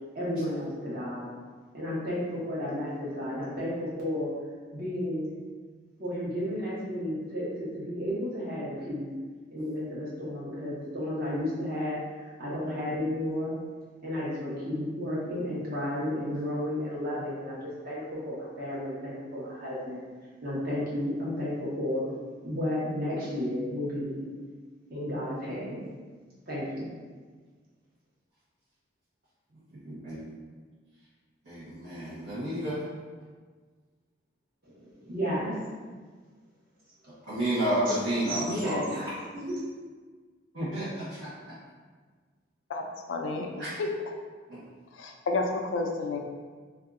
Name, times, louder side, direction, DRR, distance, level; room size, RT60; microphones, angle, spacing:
voice 1, 0.1-1.3 1.7-4.3 4.7-5.3 6.0-7.5 7.7-9.1 9.5-13.5 14.0-20.0 20.4-22.1 22.4-24.2 24.9-25.8 26.5-26.9 34.6-35.6 37.9-38.0 38.3-39.6, left 1 dB, 50° right, -8 dB, 1.1 m, -32 dB
voice 2, 29.7-30.2 31.4-32.8 37.3-38.9 40.5-41.5 43.6-43.8 44.5-44.6, right 1 dB, 75° right, -14 dB, 1.0 m, -31 dB
voice 3, 42.7-43.5 43.8-43.9 44.9-46.2, left 3 dB, 85° left, 2 dB, 0.4 m, -30 dB
2.6 x 2.3 x 3.6 m, 1.5 s
head